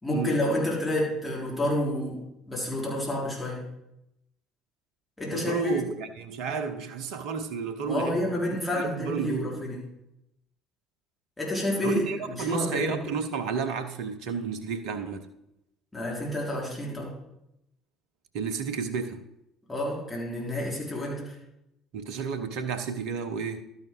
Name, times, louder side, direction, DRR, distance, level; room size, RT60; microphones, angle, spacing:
voice 1, 0.0-2.2 2.5-3.6 5.2-5.8 7.8-9.8 11.4-13.0 15.9-17.1 19.7-21.4, left 1 dB, 15° left, 3.8 m, -29 dB
voice 2, 5.3-8.3 8.7-9.6 11.8-15.3 18.3-19.2 21.9-23.6, right 6 dB, 60° right, 0.8 m, -31 dB
12.0 x 5.8 x 4.5 m
figure-of-eight pair, 55°, 0 cm